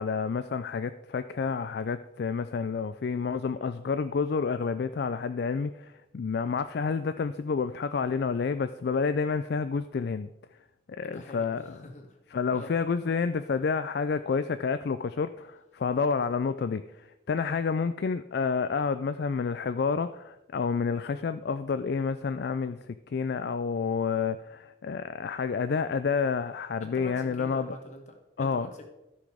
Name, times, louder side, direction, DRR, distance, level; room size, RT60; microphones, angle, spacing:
voice 1, 0.0-10.3 10.9-11.8 12.3-16.8 17.3-27.8 28.4-28.7, left 5 dB, 55° left, 11 dB, 0.4 m, -29 dB
voice 2, 11.0-11.5 11.7-12.2 12.5-12.7 26.8-28.9, left 1 dB, 40° left, 4 dB, 1.5 m, -45 dB
13.0 x 6.1 x 4.9 m, 0.93 s
head